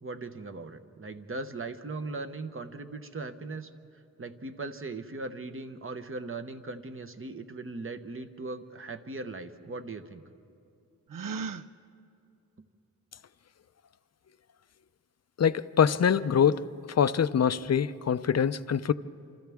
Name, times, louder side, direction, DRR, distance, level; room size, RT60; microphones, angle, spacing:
voice 1, 0.0-3.7 4.2-10.2, right 3 dB, 35° right, 8 dB, 1.0 m, -39 dB
Gasp, 11.1-11.7, right 5 dB, 60° right, 0.6 m, -35 dB
voice 2, 15.4-16.6 17.0-18.9, left 7 dB, 45° left, 14 dB, 0.5 m, -24 dB
27.5 x 26.5 x 3.5 m, 2.5 s
wide cardioid pair, 105°, 36 cm